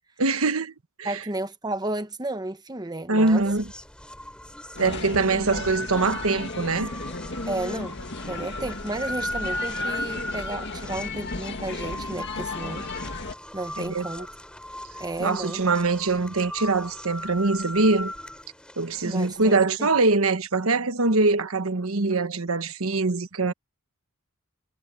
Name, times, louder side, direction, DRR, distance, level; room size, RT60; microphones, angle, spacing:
voice 1, 0.2-0.7 1.0-1.1 3.1-3.7 4.8-6.9 13.8-14.1 15.2-18.1 18.8-23.5, right 3 dB, 80° right, 1.3 m, -23 dB
voice 2, 1.0-3.4 7.5-8.0 8.3-12.9 13.5-14.3 15.0-15.6 19.0-19.9, right 2 dB, 20° right, 1.1 m, -32 dB
sound 1, 3.3-19.6, left 1 dB, 5° left, 4.5 m, -37 dB
sound 2, 4.8-13.4, left 3 dB, 55° left, 2.2 m, -35 dB
head